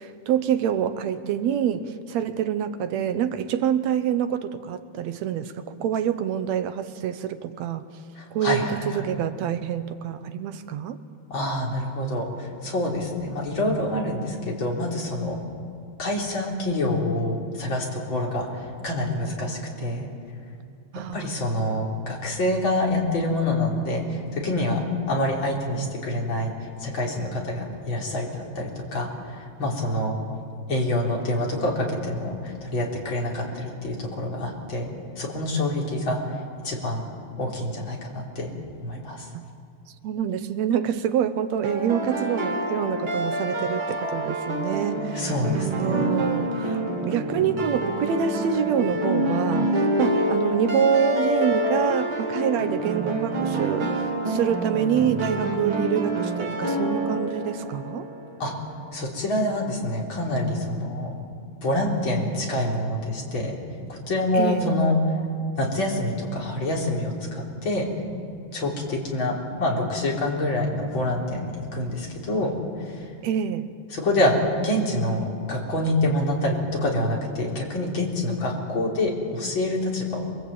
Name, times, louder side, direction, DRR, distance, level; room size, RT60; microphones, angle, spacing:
voice 1, 0.0-7.9 8.3-11.0 20.9-21.3 39.3-39.5 40.0-49.7 50.0-58.1 64.3-64.7 73.2-73.7, right 8 dB, 70° right, 10 dB, 2.1 m, -26 dB
voice 2, 8.2-9.1 11.3-15.4 16.0-20.1 21.1-26.5 26.8-30.2 30.7-34.9 35.2-36.2 36.6-37.0 37.4-38.5 38.8-39.3 45.1-46.0 58.4-58.5 58.9-61.2 61.6-63.6 63.9-65.0 65.6-67.9 68.5-72.5 72.8-73.1 73.9-80.3, left 1 dB, 40° left, -2 dB, 4.5 m, -26 dB
sound 1, 41.6-58.5, right 1 dB, 40° right, 3.5 m, -27 dB
27.0 x 21.5 x 8.6 m, 2.3 s
omnidirectional pair, 3.4 m